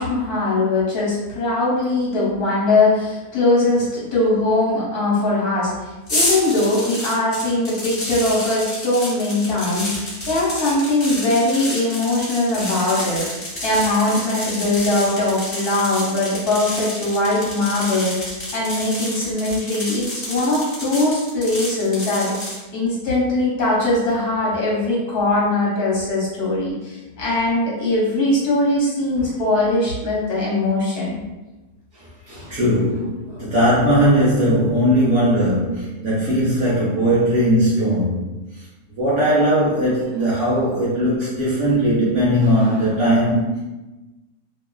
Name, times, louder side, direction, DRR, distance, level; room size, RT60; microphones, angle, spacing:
voice 1, 0.0-31.2, left 2 dB, 70° left, -6 dB, 1.3 m, -21 dB
sound 1, 6.1-22.6, left 1 dB, 30° left, 1.0 m, -29 dB
voice 2, 32.3-38.3 39.0-43.6, equal, 65° right, -8 dB, 0.8 m, -19 dB
2.7 x 2.3 x 2.2 m, 1.1 s
omnidirectional pair, 1.7 m